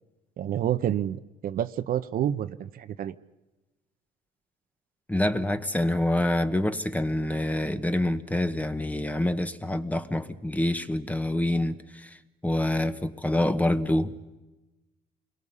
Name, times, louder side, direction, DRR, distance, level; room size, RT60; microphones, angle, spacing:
voice 1, 0.4-3.1, right 10 dB, 60° right, 0.9 m, -29 dB
voice 2, 5.1-12.2 12.4-14.4, left 1 dB, 10° left, 1.1 m, -26 dB
28.5 x 22.5 x 5.6 m
cardioid pair, 110°, 17 cm